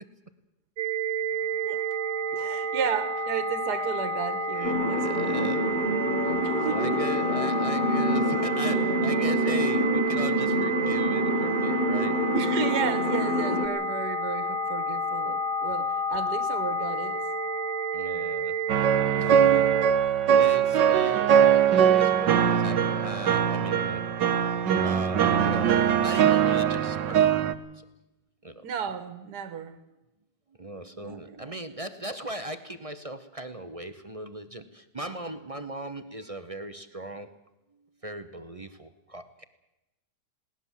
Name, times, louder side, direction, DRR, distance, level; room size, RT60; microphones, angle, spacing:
sound 1, 0.8-19.9, right 3 dB, 50° right, 1.9 m, -30 dB
voice 1, 2.3-5.4 6.4-7.1 12.3-17.3 19.2-19.7 28.6-29.8 31.0-31.6, right 7 dB, 70° right, 1.8 m, -33 dB
voice 2, 4.5-5.7 6.7-12.2 17.9-18.6 19.2-19.7 20.3-24.0 24.8-27.4 28.4-28.6 30.6-37.3 38.0-39.4, right 1 dB, 25° right, 0.8 m, -38 dB
sound 2, 4.6-13.7, left 1 dB, 30° left, 1.6 m, -27 dB
sound 3, 18.7-27.5, right 8 dB, 85° right, 1.7 m, -22 dB
20.0 x 18.5 x 7.4 m
omnidirectional pair, 1.9 m